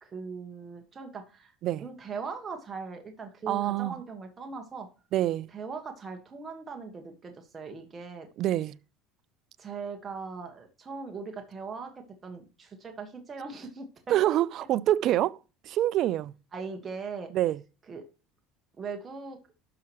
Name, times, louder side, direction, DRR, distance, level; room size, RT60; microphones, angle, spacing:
voice 1, 0.0-1.5 1.8-4.9 5.5-8.3 9.6-14.1 16.5-17.3 17.9-18.0 18.8-19.4, right 5 dB, 25° right, 1.6 m, -40 dB
voice 2, 3.5-3.9 5.1-5.5 8.4-8.8 14.1-15.4 15.6-16.3 17.3-17.6, right 13 dB, 55° right, 0.4 m, -26 dB
12.0 x 5.8 x 3.1 m
supercardioid pair, 110°, 0 cm